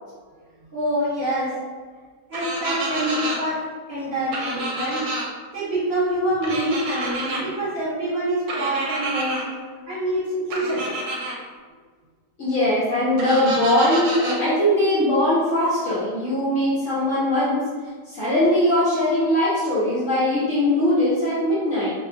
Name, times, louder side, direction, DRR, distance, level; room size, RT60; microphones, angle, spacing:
voice 1, 0.7-1.6 2.3-5.0 5.5-9.5 9.9-11.0, right 1 dB, 40° right, -13 dB, 1.4 m, -26 dB
sound 1, 2.3-3.4 4.3-5.2 6.4-7.4 8.5-9.4 10.5-11.3 13.2-14.4, right 2 dB, 70° right, 1.1 m, -28 dB
voice 2, 12.4-17.6 18.1-21.9, left 1 dB, 60° left, -10 dB, 0.9 m, -21 dB
2.8 x 2.1 x 2.5 m, 1.5 s
omnidirectional pair, 1.8 m